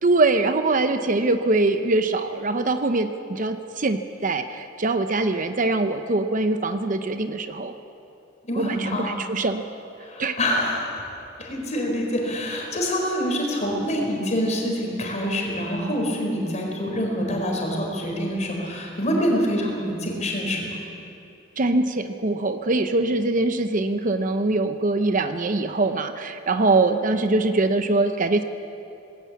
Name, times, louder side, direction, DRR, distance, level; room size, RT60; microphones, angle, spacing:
voice 1, 0.0-7.7 8.6-9.6 10.2-10.4 21.6-28.4, right 2 dB, 45° right, 9 dB, 0.8 m, -23 dB
voice 2, 8.5-9.2 10.0-11.0 11.4-20.8, equal, 35° left, 0 dB, 4.6 m, -26 dB
19.5 x 18.0 x 8.4 m, 2.8 s
head